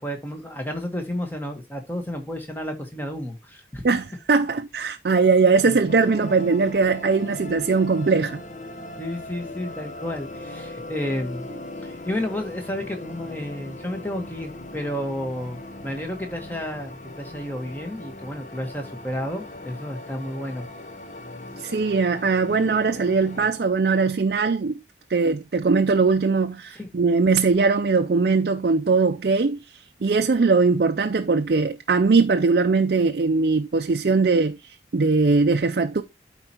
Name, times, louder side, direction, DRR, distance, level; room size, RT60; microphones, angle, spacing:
voice 1, 0.0-3.8 5.6-5.8 9.0-11.5 11.8-20.7 26.7-26.9, left 1 dB, 10° left, 1.3 m, -31 dB
voice 2, 3.8-8.4 21.6-24.8 25.1-36.0, right 4 dB, 60° right, 0.5 m, -20 dB
sound 1, 5.9-23.5, left 2 dB, 45° left, 0.8 m, -39 dB
12.5 x 4.4 x 2.9 m
head